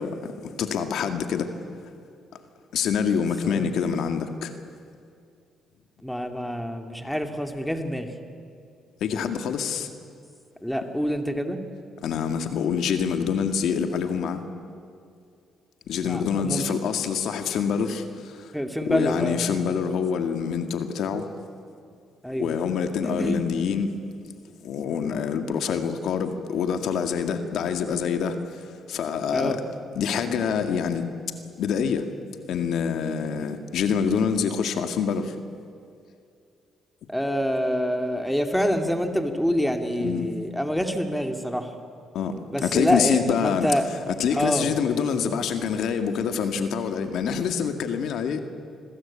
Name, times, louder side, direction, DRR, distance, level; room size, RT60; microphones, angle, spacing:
voice 1, 0.0-1.5 2.7-4.5 9.0-9.9 12.0-14.4 15.9-18.5 18.8-21.3 22.4-23.9 24.6-29.6 30.0-31.1 31.6-32.1 32.5-35.4 40.0-40.3 42.1-42.3 42.6-43.7 44.1-48.4, left 7 dB, 75° left, 7 dB, 2.0 m, -26 dB
voice 2, 6.0-8.1 10.6-11.6 16.0-16.6 18.5-19.4 22.2-22.5 23.0-23.4 29.3-29.6 37.1-41.7 42.5-43.9 44.3-44.7, equal, ahead, 6 dB, 2.5 m, -26 dB
27.5 x 21.0 x 8.7 m, 2.4 s
cardioid pair, 90°, 0 cm